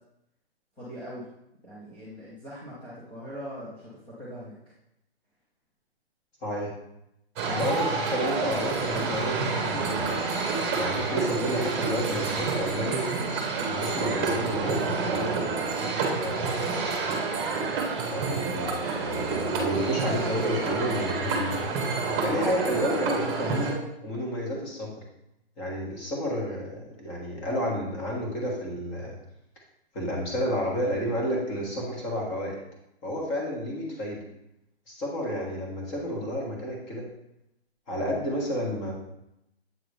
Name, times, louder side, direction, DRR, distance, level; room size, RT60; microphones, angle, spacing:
voice 1, 0.8-1.2 1.6-4.5, equal, 5° left, -10 dB, 0.4 m, -41 dB
voice 2, 6.4-6.7 7.5-10.2 10.8-13.1 13.7-15.4 16.2-17.1 18.1-24.9 25.6-29.1 29.9-32.5 33.0-34.2 34.9-37.0 37.9-38.9, equal, 25° left, -2 dB, 1.5 m, -31 dB
sound 1, 7.4-23.7, right 4 dB, 25° right, 1.0 m, -28 dB
7.8 x 3.8 x 3.3 m, 0.83 s
hypercardioid pair, 155°, 32 cm